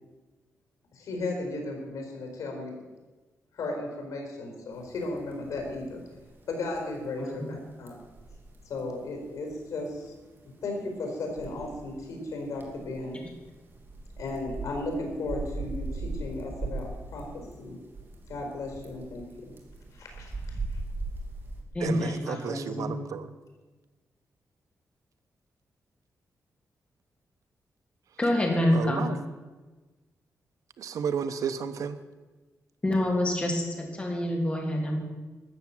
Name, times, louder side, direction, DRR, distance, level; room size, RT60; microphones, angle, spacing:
voice 1, 0.9-2.8 3.5-6.0 6.5-8.0 8.6-10.1 10.6-13.2 14.2-17.8 18.3-19.6 20.0-20.6, left 2 dB, 90° left, 2 dB, 4.4 m, -35 dB
sound 1, 4.7-21.6, right 3 dB, 40° right, 2.6 m, -40 dB
voice 2, 7.2-7.5 21.7-22.9 28.2-29.1 32.8-35.0, left 1 dB, 20° left, 0 dB, 3.0 m, -27 dB
voice 3, 21.8-23.3 28.7-29.2 30.8-32.0, right 7 dB, 75° right, 11 dB, 0.9 m, -32 dB
13.5 x 7.2 x 9.2 m, 1.2 s
wide cardioid pair, 140°, 6 cm